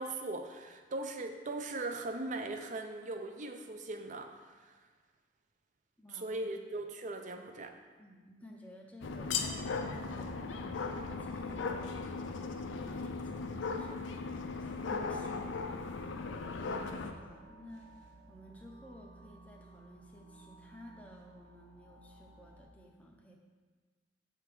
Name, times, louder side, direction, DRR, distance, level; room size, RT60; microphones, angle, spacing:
voice 1, 0.0-4.7 6.1-7.8, right 2 dB, 40° right, 6 dB, 0.4 m, -39 dB
voice 2, 6.0-6.5 8.0-23.3, equal, 10° left, 0 dB, 0.5 m, -55 dB
sound 1, 9.0-17.1, left 4 dB, 75° left, 0.4 m, -37 dB
sound 2, 16.1-22.6, right 2 dB, 85° right, 1.4 m, -57 dB
6.7 x 3.4 x 4.6 m, 1.4 s
head